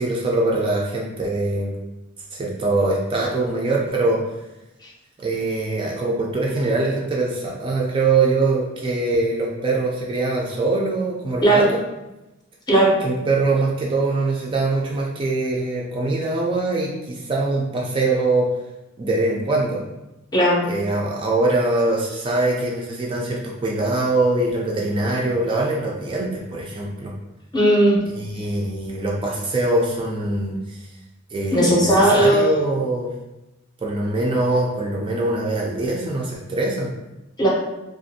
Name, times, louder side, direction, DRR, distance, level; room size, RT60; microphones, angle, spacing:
voice 1, 0.0-1.7 2.3-4.2 5.2-11.8 13.0-18.5 19.0-19.8 20.6-27.1 28.1-30.8 31.3-33.1 33.8-36.9, right 2 dB, 25° right, -2 dB, 0.3 m, -23 dB
voice 2, 20.3-20.7 27.5-28.0 31.5-32.5 37.4-37.5, right 1 dB, 20° left, -3 dB, 0.6 m, -16 dB
2.5 x 2.4 x 2.6 m, 0.98 s
head